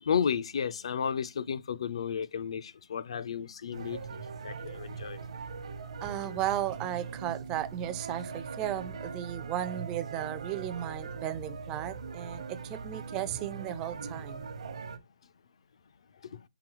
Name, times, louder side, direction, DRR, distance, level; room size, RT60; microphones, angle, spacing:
voice 1, 0.0-5.2 16.2-16.4, left 7 dB, 55° left, 0.4 m, -33 dB
sound 1, 3.7-15.0, right 5 dB, 65° right, 0.9 m, -41 dB
voice 2, 6.0-14.5, right 12 dB, 15° right, 0.3 m, -35 dB
4.2 x 3.8 x 3.0 m
hypercardioid pair, 165°, 4 cm